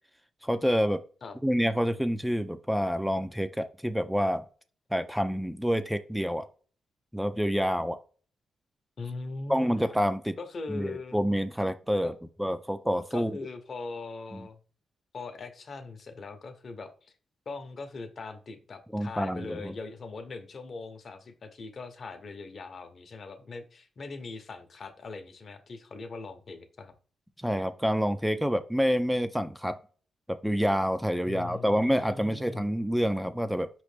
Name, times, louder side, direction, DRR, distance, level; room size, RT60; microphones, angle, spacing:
voice 1, 0.4-1.0 1.4-4.4 4.9-6.5 7.1-8.0 9.5-10.3 10.7-12.1 12.4-13.3 14.3-14.4 18.9-19.7 27.4-29.8 30.3-33.7, equal, ahead, 11 dB, 0.3 m, -27 dB
voice 2, 9.0-9.9 10.4-11.2 12.0-12.1 13.1-14.6 15.1-17.1 17.5-26.9 31.3-32.7, left 3 dB, 50° left, 8 dB, 0.7 m, -41 dB
4.9 x 3.1 x 3.2 m, 0.40 s
cardioid pair, 95°, 0 cm